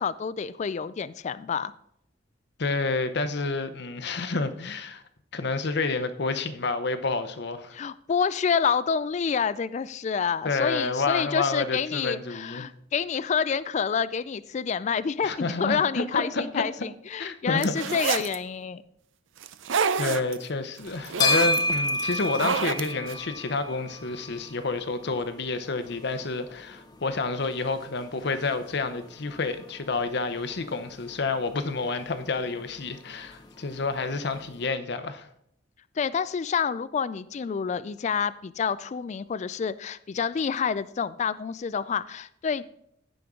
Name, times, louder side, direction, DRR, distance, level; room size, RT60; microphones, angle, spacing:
voice 1, 0.0-1.7 7.7-18.8 36.0-42.6, left 6 dB, 35° left, 0.3 m, -28 dB
voice 2, 2.6-5.0 5.3-7.8 10.4-12.7 15.2-16.6 17.2-18.0 20.0-35.3, left 3 dB, 60° left, 0.8 m, -29 dB
sound 1, 17.6-18.4 19.4-20.4 20.8-21.6 22.1-23.1, right 6 dB, 80° right, 0.5 m, -28 dB
sound 2, 20.8-34.7, left 2 dB, 20° left, 0.7 m, -34 dB
15.5 x 5.3 x 3.7 m
head